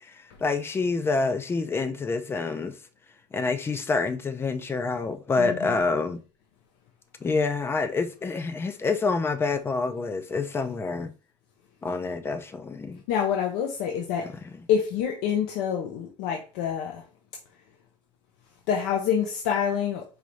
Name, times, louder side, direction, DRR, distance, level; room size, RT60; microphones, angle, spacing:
voice 1, 0.0-2.7 3.3-6.2 7.2-11.1 11.8-13.0 14.2-14.3, left 4 dB, 15° left, 0.4 m, -27 dB
voice 2, 5.4-5.8 13.1-14.3 14.7-17.0 18.7-20.0, left 8 dB, 80° left, 0.7 m, -27 dB
4.9 x 2.6 x 3.0 m
cardioid pair, 155°, 15 cm